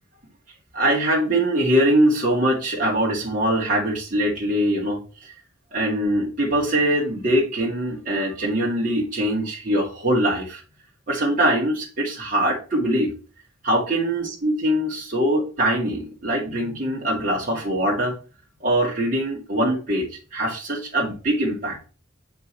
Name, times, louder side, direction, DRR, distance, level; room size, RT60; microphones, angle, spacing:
voice 1, 0.7-5.0 5.7-10.6 11.1-13.1 13.6-18.1 18.6-20.1 20.3-21.8, right 1 dB, 45° right, -4 dB, 2.2 m, -22 dB
8.1 x 4.8 x 4.4 m, 0.35 s
head